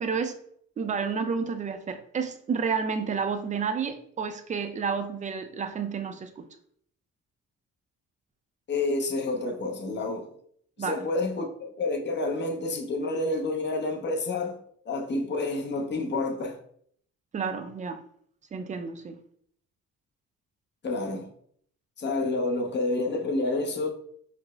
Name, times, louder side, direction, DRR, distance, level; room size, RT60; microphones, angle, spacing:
voice 1, 0.0-0.3 0.8-6.5 10.8-11.0 17.3-18.0 18.5-19.2, right 6 dB, 25° right, 0.4 m, -30 dB
voice 2, 8.7-10.3 10.8-14.6 14.9-16.6 20.8-21.3 22.0-23.9, left 2 dB, 35° left, 0.7 m, -29 dB
4.8 x 2.0 x 2.3 m
cardioid pair, 90°, 30 cm